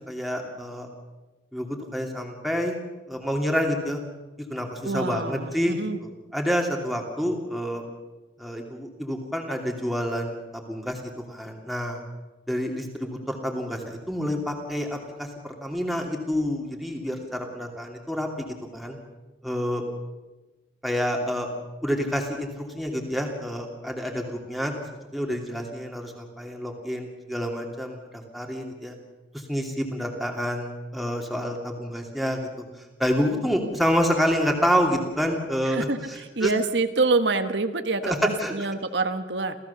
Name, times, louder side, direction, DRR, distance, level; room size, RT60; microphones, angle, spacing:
voice 1, 0.1-0.9 1.5-2.8 3.1-4.0 4.5-7.8 8.4-12.0 12.5-19.0 19.4-19.8 20.8-21.5 21.8-24.7 25.1-28.9 29.3-32.4 33.0-36.5 38.0-38.5, equal, ahead, 1 dB, 2.8 m, -28 dB
voice 2, 4.8-6.0 35.6-39.6, right 3 dB, 85° right, 8 dB, 1.4 m, -26 dB
28.0 x 15.5 x 7.1 m, 1.2 s
head